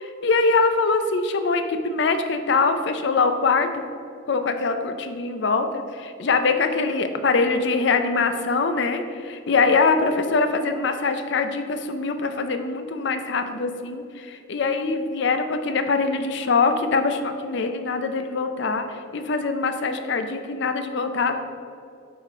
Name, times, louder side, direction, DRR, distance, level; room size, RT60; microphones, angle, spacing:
voice 1, 0.0-3.8 4.3-21.3, left 4 dB, 60° left, 8 dB, 0.5 m, -23 dB
7.7 x 4.9 x 3.6 m, 2.5 s
head